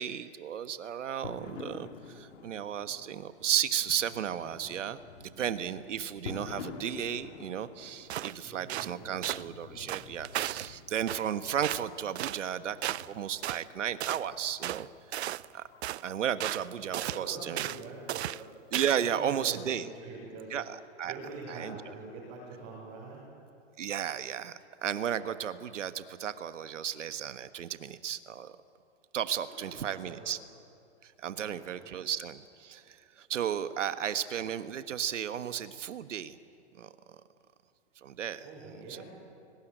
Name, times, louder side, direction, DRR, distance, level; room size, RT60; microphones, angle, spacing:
voice 1, 0.0-14.9 15.2-15.6 16.0-17.7 18.7-19.9 20.5-21.1 21.5-21.8 23.8-28.6 29.1-30.4 31.0-36.4 36.8-36.9 38.0-38.4 38.9-39.0, right 9 dB, 90° right, 11 dB, 1.5 m, -34 dB
sound 1, 1.2-19.2, left 5 dB, 80° left, 2.6 m, -50 dB
sound 2, 8.1-8.4 8.7-8.9 9.2-9.4 9.9-10.7 11.1-11.3 11.6-11.9 12.1-12.4 12.8-13.1 13.4-13.6 14.0-14.2 14.6-14.8 15.1-15.5 15.8-16.1 16.4-16.7 16.9-17.2 17.6-17.8 18.1-18.4 18.7-19.1, right 13 dB, 65° right, 0.6 m, -35 dB
voice 2, 8.4-9.2 16.8-18.3 18.9-20.6 21.1-23.3 29.4-30.3 31.3-31.9 38.4-39.0, right 3 dB, 25° right, -5 dB, 5.8 m, -45 dB
30.0 x 19.5 x 9.1 m, 2.6 s
hypercardioid pair, 160°, 36 cm